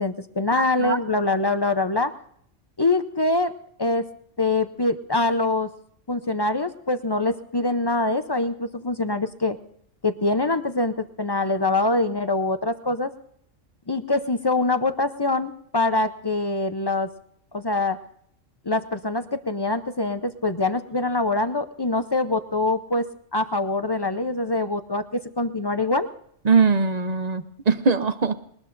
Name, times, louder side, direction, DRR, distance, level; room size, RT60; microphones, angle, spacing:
voice 1, 0.0-2.1 2.8-3.5 3.8-4.1 4.4-5.7 6.1-9.6 10.0-13.1 13.9-17.1 17.5-18.0 18.7-26.1, left 2 dB, 35° left, 10 dB, 0.4 m, -24 dB
voice 2, 0.5-1.0 26.4-28.3, right 5 dB, 40° right, 11 dB, 0.7 m, -21 dB
21.0 x 19.5 x 2.6 m, 0.68 s
omnidirectional pair, 1.3 m